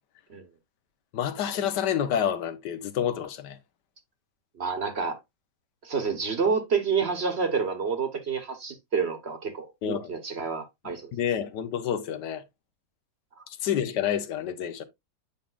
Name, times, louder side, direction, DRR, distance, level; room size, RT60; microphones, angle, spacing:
voice 1, 1.1-3.6 9.8-10.1 11.1-12.4 13.5-14.8, left 9 dB, 85° left, 1.5 m, -28 dB
voice 2, 4.6-5.2 5.8-11.1, right 5 dB, 45° right, 1.1 m, -28 dB
8.4 x 5.3 x 2.3 m
omnidirectional pair, 1.8 m